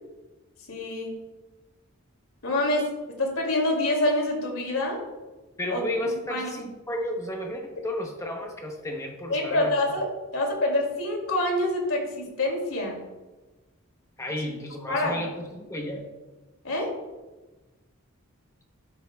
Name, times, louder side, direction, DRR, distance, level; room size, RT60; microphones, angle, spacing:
voice 1, 0.7-1.1 2.4-2.9 3.2-5.0 5.7-5.8 6.3-6.5 9.3-10.1 10.3-13.0 14.5-14.6 14.9-15.2 16.6-16.9, left 1 dB, 80° left, 1 dB, 2.5 m, -26 dB
voice 2, 5.6-10.0 14.2-16.1, left 1 dB, 15° left, 2 dB, 0.8 m, -33 dB
11.5 x 8.5 x 2.3 m, 1.2 s
head